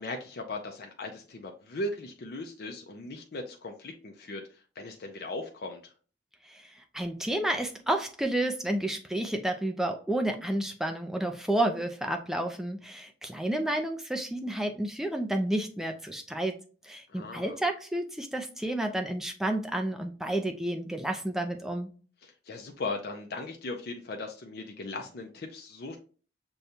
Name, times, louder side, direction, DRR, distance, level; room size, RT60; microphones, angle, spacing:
voice 1, 0.0-4.4 4.8-5.8 17.1-17.6 22.2-26.0, left 2 dB, 55° left, 3 dB, 0.5 m, -38 dB
voice 2, 6.4-16.6 16.8-21.9, right 1 dB, ahead, 4 dB, 0.4 m, -31 dB
6.4 x 2.3 x 2.7 m, 0.39 s
head